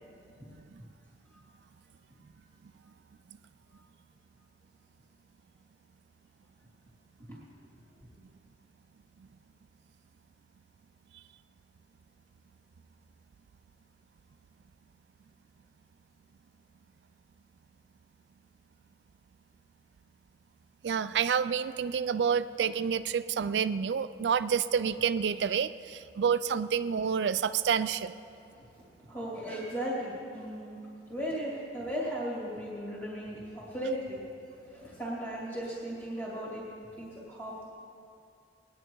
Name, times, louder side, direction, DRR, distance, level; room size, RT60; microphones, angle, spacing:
voice 1, 20.8-28.2, right 7 dB, 75° right, 13 dB, 0.4 m, -28 dB
voice 2, 29.0-30.8 31.1-34.3 34.6-36.7 37.0-37.7, equal, 15° left, -6 dB, 2.4 m, -36 dB
19.5 x 10.0 x 4.6 m, 2.5 s
head